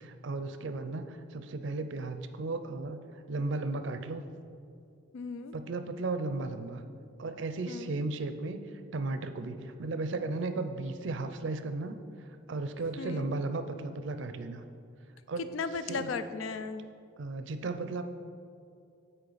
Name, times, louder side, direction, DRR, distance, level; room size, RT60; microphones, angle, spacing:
voice 1, 0.0-4.2 5.5-6.8 7.2-8.6 8.9-12.0 12.5-14.6 15.3-15.5 15.8-16.1 17.2-18.0, right 3 dB, 70° right, 9 dB, 0.5 m, -35 dB
voice 2, 5.1-5.5 7.7-7.9 13.0-13.3 15.4-16.8, left 4 dB, 85° left, 11 dB, 0.4 m, -36 dB
9.8 x 4.4 x 4.0 m, 2.4 s
head